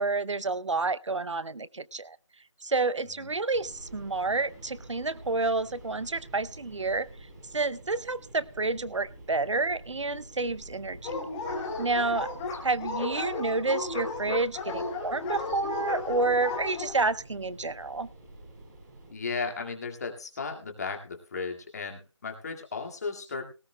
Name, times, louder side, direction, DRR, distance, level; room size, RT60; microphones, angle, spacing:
voice 1, 0.0-2.2 2.6-7.1 7.5-11.1 11.8-12.3 12.6-18.1, right 3 dB, 70° right, 17 dB, 0.7 m, -29 dB
sound 1, 3.5-19.1, right 2 dB, 35° right, 4.1 m, -48 dB
Dog, 11.0-16.9, left 3 dB, 10° left, 1.0 m, -34 dB
voice 2, 19.1-23.4, left 4 dB, 35° left, 3 dB, 2.1 m, -35 dB
18.0 x 16.0 x 2.2 m, 0.31 s
figure-of-eight pair, 160°, 16 cm